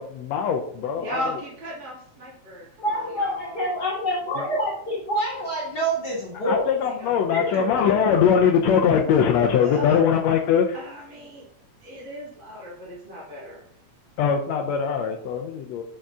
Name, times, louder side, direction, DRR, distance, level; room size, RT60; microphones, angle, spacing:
voice 1, 0.0-1.4 4.3-4.5 6.4-10.8 14.2-15.8, left 7 dB, 80° left, 3 dB, 1.8 m, -21 dB
voice 2, 1.0-3.6 6.8-7.6 9.6-10.0 10.7-11.4 11.8-13.6, left 1 dB, 50° right, -6 dB, 3.5 m, -36 dB
voice 3, 2.8-6.7 7.3-7.9, equal, 40° left, -5 dB, 1.9 m, -27 dB
7.8 x 5.0 x 3.6 m, 0.66 s
omnidirectional pair, 3.4 m